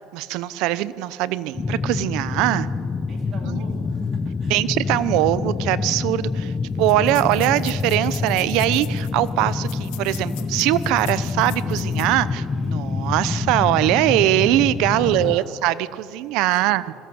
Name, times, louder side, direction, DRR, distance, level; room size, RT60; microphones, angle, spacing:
voice 1, 0.1-2.7 3.5-3.6 4.5-6.5 6.8-16.9, right 15 dB, 70° right, 17 dB, 0.7 m, -21 dB
sound 1, 1.5-15.4, left 4 dB, 20° left, 0.6 m, -26 dB
voice 2, 3.1-4.7 14.9-15.5 16.5-16.8, right 4 dB, 40° right, 2 dB, 3.4 m, -43 dB
sound 2, 5.7-5.8 6.0-6.1 6.8-12.2 12.6-12.7 13.2-13.4, left 18 dB, 85° left, 1.1 m, -42 dB
sound 3, 8.2-15.1, left 1 dB, 5° right, 6.2 m, -54 dB
21.0 x 16.0 x 7.9 m, 2.6 s
cardioid pair, 140°, 0 cm